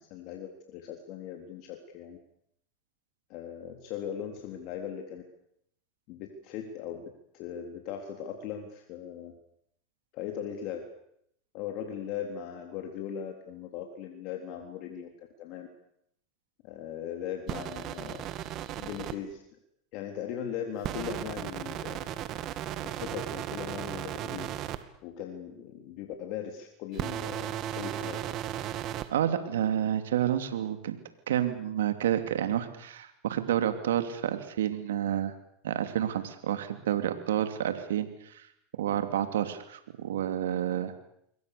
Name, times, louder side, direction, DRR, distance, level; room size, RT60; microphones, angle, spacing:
voice 1, 0.0-2.2 3.3-5.2 6.1-9.3 10.1-10.9 11.5-15.7 16.6-18.2 18.8-19.4 19.9-22.0 22.8-24.5 25.0-28.3, left 8 dB, 60° left, 4 dB, 3.8 m, -39 dB
sound 1, 17.5-19.1 20.8-24.8 26.9-29.1, right 12 dB, 50° right, 2.3 m, -35 dB
voice 2, 29.1-31.0 31.3-35.3 35.6-38.5 38.8-40.9, right 10 dB, 85° right, 8 dB, 2.7 m, -29 dB
28.0 x 22.5 x 6.9 m, 0.73 s
hypercardioid pair, 100°, 0 cm